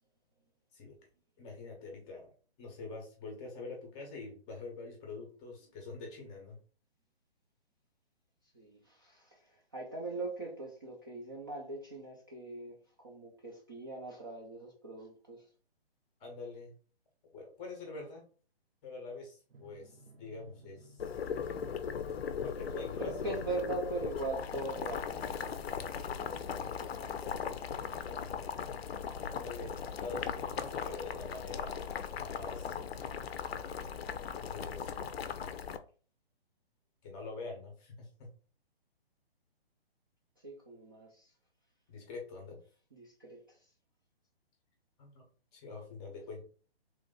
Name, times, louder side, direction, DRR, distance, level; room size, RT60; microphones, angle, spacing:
voice 1, 1.4-2.3 2.6-6.6 16.2-16.7 17.3-18.2 18.8-21.2 22.4-23.1 28.1-28.3 29.2-29.7 30.0-31.8 32.2-32.8 34.4-35.0 37.0-38.3 41.9-42.6 45.0-45.2 45.5-46.4, left 3 dB, 15° left, 0 dB, 0.6 m, -45 dB
voice 2, 8.4-12.8 13.0-15.5 22.7-27.4 27.8-28.3 33.4-33.6 40.4-41.3 42.9-43.7, right 3 dB, 20° right, -3 dB, 0.4 m, -42 dB
Drum, 19.5-25.1, right 2 dB, 65° right, 0.7 m, -58 dB
Boiling, 21.0-35.8, left 7 dB, 75° left, 0.5 m, -38 dB
3.1 x 2.5 x 3.7 m, 0.41 s
hypercardioid pair, 150°, 31 cm